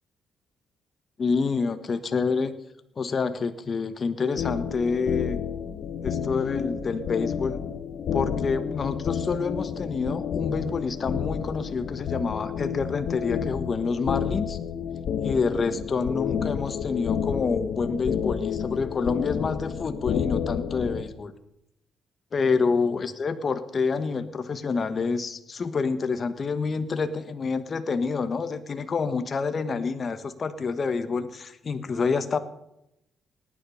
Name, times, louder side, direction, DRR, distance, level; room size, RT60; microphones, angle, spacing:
voice 1, 1.2-2.5 3.0-5.4 6.0-7.6 8.1-14.6 15.2-21.3 22.3-32.4, left 4 dB, 40° left, 10 dB, 1.3 m, -27 dB
sound 1, 4.4-21.0, left 7 dB, 65° left, 1.3 m, -30 dB
18.5 x 10.0 x 5.7 m, 0.81 s
cardioid pair, 90°, 0 cm